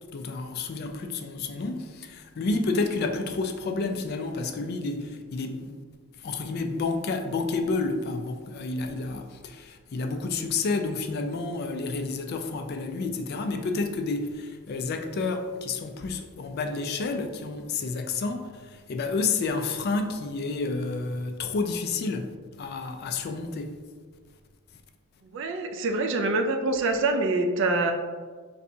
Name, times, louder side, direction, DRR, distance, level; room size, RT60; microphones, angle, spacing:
voice 1, 0.1-5.7 6.2-22.3 22.6-23.7, left 3 dB, 50° left, 0.3 m, -30 dB
voice 2, 25.3-27.9, right 2 dB, 60° right, 0.4 m, -25 dB
4.0 x 3.3 x 2.6 m
head